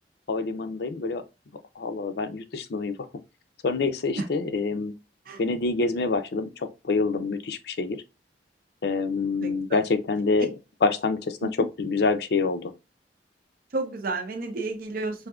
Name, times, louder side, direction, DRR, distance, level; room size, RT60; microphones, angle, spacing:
voice 1, 0.3-1.2 1.8-3.0 3.6-4.9 5.4-8.0 8.8-11.5 11.8-12.7, left 3 dB, 65° left, 0.5 m, -26 dB
voice 2, 9.4-9.8 11.4-11.5 13.7-15.3, right 3 dB, 55° right, 0.6 m, -31 dB
4.8 x 2.6 x 2.3 m
head